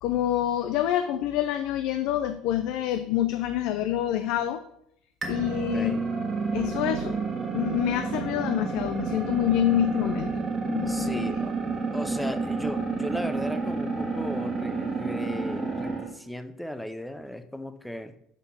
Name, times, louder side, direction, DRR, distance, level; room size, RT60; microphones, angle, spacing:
voice 1, 0.0-4.6 5.3-5.9 6.5-7.2 7.5-10.3 10.7-11.4, left 11 dB, 70° left, 10 dB, 0.4 m, -27 dB
sound 1, 5.2-16.1, right 4 dB, 25° right, 1.6 m, -30 dB
voice 2, 5.7-6.1 10.9-11.5 11.9-18.1, left 1 dB, ahead, 9 dB, 0.6 m, -36 dB
5.5 x 4.5 x 5.6 m, 0.74 s
supercardioid pair, 110°, 0 cm